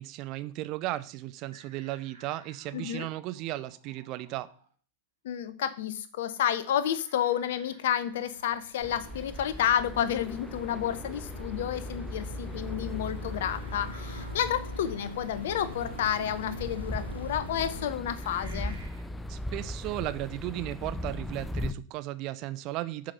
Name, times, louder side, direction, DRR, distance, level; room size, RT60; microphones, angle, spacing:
voice 1, 0.0-4.5 19.3-23.1, right 16 dB, 40° right, 14 dB, 0.6 m, -35 dB
sound 1, 1.5-4.7 6.5-11.3 12.8-14.5 15.7-15.8 17.0-17.2 18.0-19.0, right 3 dB, 70° right, 2.3 m, -56 dB
voice 2, 2.7-3.1 5.2-18.8, left 10 dB, 55° left, 13 dB, 0.8 m, -30 dB
sound 2, 7.9-17.9, left 1 dB, 90° left, 0.5 m, -45 dB
sound 3, 8.8-21.7, left 1 dB, 5° left, 0.6 m, -38 dB
7.2 x 5.0 x 5.5 m, 0.41 s
figure-of-eight pair, 90°, 0 cm